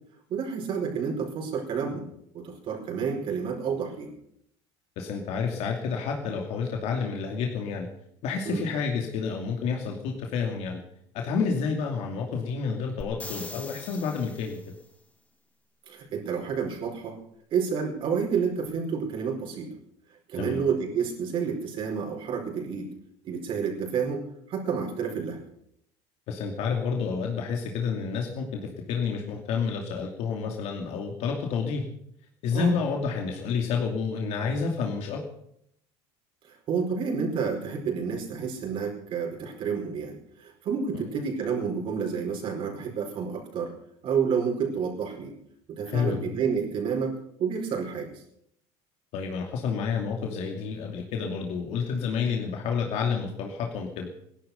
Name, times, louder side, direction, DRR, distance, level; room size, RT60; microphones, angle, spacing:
voice 1, 0.3-2.0 2.3-4.1 8.4-8.7 15.9-17.2 17.5-19.7 20.3-22.9 23.2-24.2 24.5-25.4 32.5-32.7 36.5-43.7 44.0-45.3 45.7-47.1 47.4-48.1, right 6 dB, 40° right, 0 dB, 5.0 m, -29 dB
voice 2, 5.0-7.9 8.2-10.8 11.1-14.6 20.3-20.6 26.3-31.8 32.4-35.2 40.9-41.0 45.9-46.2 49.1-54.1, left 5 dB, 55° left, 1 dB, 2.6 m, -29 dB
sound 1, 13.0-14.8 18.7-18.8, left 2 dB, 10° left, 2.0 m, -42 dB
18.0 x 11.5 x 6.7 m, 0.73 s
cardioid pair, 150°, 13 cm